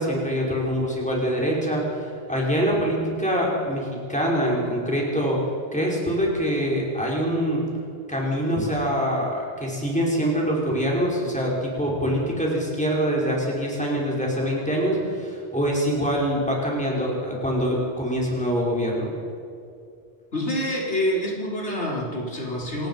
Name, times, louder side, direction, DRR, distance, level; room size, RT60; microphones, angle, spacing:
voice 1, 0.0-5.4 5.7-7.6 8.1-19.1, equal, 5° left, -3 dB, 5.3 m, -24 dB
voice 2, 20.3-22.9, equal, 85° left, -3 dB, 4.7 m, -27 dB
27.5 x 19.5 x 5.7 m, 2.4 s
omnidirectional pair, 1.1 m